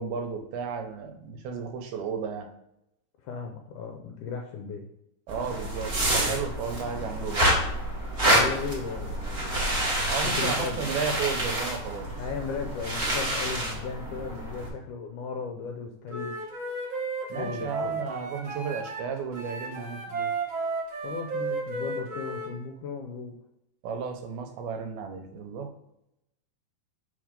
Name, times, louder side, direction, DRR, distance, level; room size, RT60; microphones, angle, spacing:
voice 1, 0.0-2.5 5.3-7.5 10.1-12.1 17.3-20.3 23.8-25.7, right 6 dB, 80° right, 5 dB, 2.7 m, -33 dB
voice 2, 3.2-4.9 8.3-9.4 10.2-10.8 12.2-16.4 17.4-18.0 21.0-23.4, left 5 dB, 80° left, 3 dB, 1.8 m, -36 dB
sound 1, 5.3-14.7, right 1 dB, 30° right, 1.2 m, -28 dB
Wind instrument woodwind instrument, 16.1-19.0 19.3-22.5, right 3 dB, 50° right, 1.5 m, -33 dB
7.6 x 3.7 x 5.1 m, 0.83 s
omnidirectional pair, 4.3 m